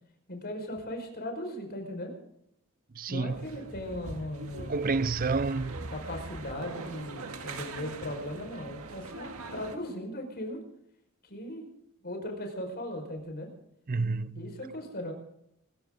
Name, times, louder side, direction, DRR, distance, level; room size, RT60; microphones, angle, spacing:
voice 1, 0.3-2.1 3.1-4.8 5.9-10.6 11.2-11.7 12.0-13.5 14.3-15.1, left 1 dB, 45° left, 5.0 m, -38 dB
voice 2, 3.0-3.4 4.7-5.8 13.9-14.5, right 4 dB, 40° right, 0.5 m, -29 dB
sound 1, 3.3-9.8, right 2 dB, 70° right, 2.1 m, -42 dB
24.5 x 14.5 x 3.8 m
head